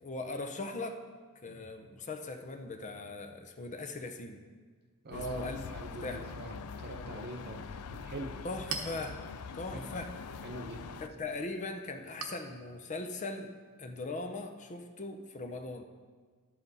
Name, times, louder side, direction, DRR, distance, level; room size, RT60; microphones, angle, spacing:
voice 1, 0.0-1.0 1.4-4.4 5.1-5.7 5.9-6.2 8.4-9.2 9.5-10.1 11.0-13.5 13.8-15.8, left 3 dB, 35° left, 6 dB, 0.6 m, -40 dB
voice 2, 5.0-8.4 9.7-9.9 10.4-10.9, right 1 dB, 45° right, 4 dB, 0.9 m, -43 dB
sound 1, 5.1-11.1, left 5 dB, 90° left, 0.5 m, -44 dB
Chink clink, 8.1-15.3, right 5 dB, 80° right, 1.0 m, -48 dB
11.5 x 7.6 x 4.1 m, 1.5 s
head